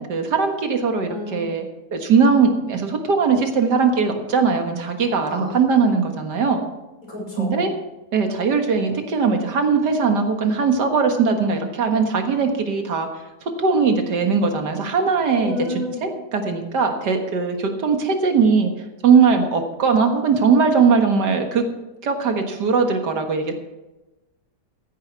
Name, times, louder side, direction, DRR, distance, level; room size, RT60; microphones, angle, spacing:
voice 1, 0.0-1.7 1.9-6.6 7.4-7.7 8.1-13.1 13.6-15.6 16.0-18.7 19.0-21.7 22.0-23.5, right 5 dB, 75° right, 5 dB, 2.2 m, -20 dB
voice 2, 1.1-1.5 5.3-5.5 7.1-7.7 15.4-16.0, left 2 dB, 50° left, -4 dB, 6.4 m, -30 dB
15.5 x 10.0 x 4.7 m, 1.0 s
omnidirectional pair, 1.8 m